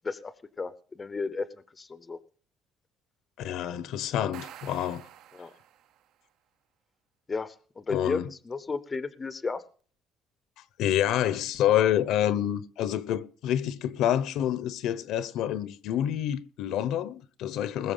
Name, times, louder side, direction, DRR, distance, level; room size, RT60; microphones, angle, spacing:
voice 1, 0.0-1.5 1.8-2.2 5.3-5.5 7.3-9.6, left 4 dB, 15° left, 0.7 m, -34 dB
voice 2, 3.4-5.0 7.9-8.3 10.8-17.9, left 11 dB, 65° left, 0.9 m, -27 dB
sound 1, 4.1-6.1, right 11 dB, 65° right, 0.9 m, -48 dB
20.5 x 7.1 x 5.6 m
cardioid pair, 175°, 0 cm